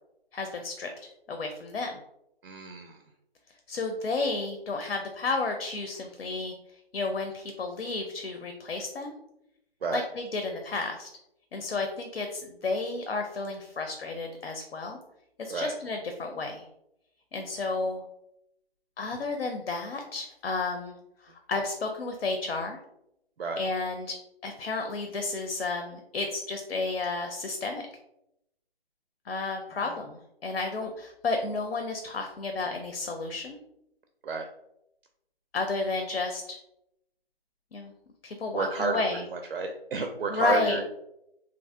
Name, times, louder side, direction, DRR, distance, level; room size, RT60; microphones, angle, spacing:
voice 1, 0.3-0.9 1.3-2.0 3.7-6.5 6.9-9.2 9.9-11.1 11.5-15.0 15.4-16.6 17.3-18.0 19.0-21.0 21.2-22.8 23.6-24.1 24.4-27.8 29.3-33.6 35.5-36.6 37.7-37.9 38.2-39.2 40.3-40.8, left 3 dB, 90° left, 4 dB, 0.5 m, -32 dB
voice 2, 2.4-3.0 9.8-10.0 15.5-15.7 23.4-23.6 29.8-29.9 34.2-34.5 38.5-39.0 39.3-40.8, right 4 dB, 75° right, 4 dB, 0.4 m, -30 dB
3.1 x 2.5 x 2.4 m, 0.82 s
figure-of-eight pair, 175°, 31 cm